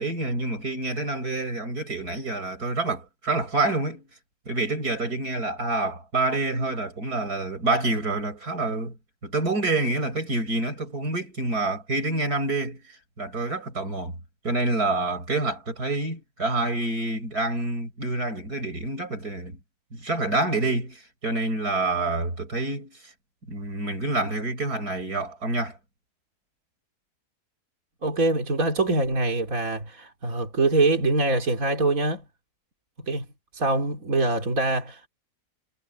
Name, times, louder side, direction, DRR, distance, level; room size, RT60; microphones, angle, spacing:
voice 1, 0.0-4.0 4.5-9.0 9.2-12.8 13.2-14.1 14.4-19.6 19.9-23.0 23.5-25.8, right 2 dB, 80° right, 7.4 m, -27 dB
voice 2, 28.0-32.2 33.1-33.3 33.5-35.1, right 2 dB, 60° right, 3.5 m, -24 dB
omnidirectional pair, 1.6 m